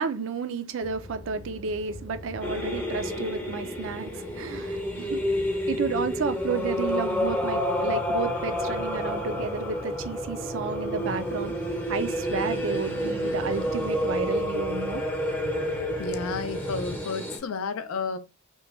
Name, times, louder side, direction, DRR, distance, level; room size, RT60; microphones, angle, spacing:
voice 1, 0.0-5.2 5.7-11.5 11.9-15.0 15.5-15.6, right 5 dB, 65° right, 0.4 m, -32 dB
sound 1, 0.8-17.0, left 1 dB, 50° left, 0.7 m, -41 dB
sound 2, 2.4-17.4, equal, 10° left, 0.5 m, -29 dB
voice 2, 16.0-18.2, left 4 dB, 80° left, 0.4 m, -31 dB
3.0 x 2.2 x 3.4 m
head